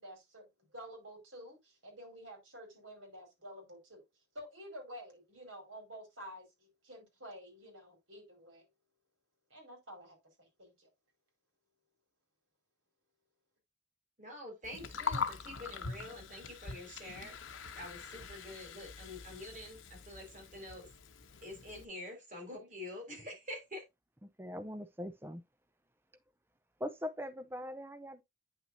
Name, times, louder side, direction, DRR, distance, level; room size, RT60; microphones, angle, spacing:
voice 1, 0.0-4.0 4.3-8.6 9.5-10.9, equal, 80° right, 4.3 m, -50 dB
voice 2, 14.2-17.4 17.7-20.9 21.4-23.8, left 1 dB, 40° right, 4.6 m, -47 dB
Gurgling, 14.6-21.8, left 5 dB, 85° left, 1.0 m, -42 dB
voice 3, 24.2-25.4 26.8-28.2, equal, 10° right, 0.6 m, -41 dB
9.2 x 6.1 x 2.7 m
head